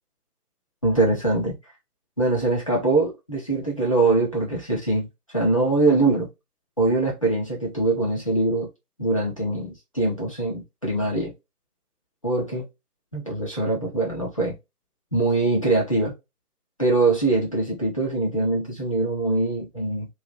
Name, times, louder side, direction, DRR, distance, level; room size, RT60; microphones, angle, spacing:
voice 1, 0.8-1.6 2.2-6.3 6.8-8.7 9.0-11.3 12.2-12.7 13.1-14.6 15.1-16.1 16.8-20.1, right 2 dB, 20° left, 0.6 m, -23 dB
2.6 x 2.3 x 3.9 m
figure-of-eight pair, 150°, 46 cm